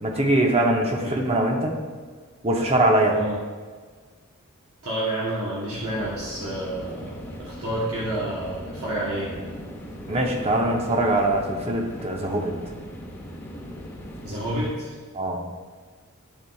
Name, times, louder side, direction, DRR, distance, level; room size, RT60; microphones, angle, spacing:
voice 1, 0.0-1.7 2.4-3.2 10.1-12.6 15.1-15.4, right 1 dB, 30° right, 1 dB, 0.7 m, -22 dB
voice 2, 4.8-7.1 7.4-9.3 14.2-14.9, right 1 dB, 75° right, -7 dB, 1.1 m, -29 dB
sound 1, 5.7-14.7, equal, 10° left, 1.1 m, -39 dB
10.5 x 3.9 x 2.3 m, 1.5 s
head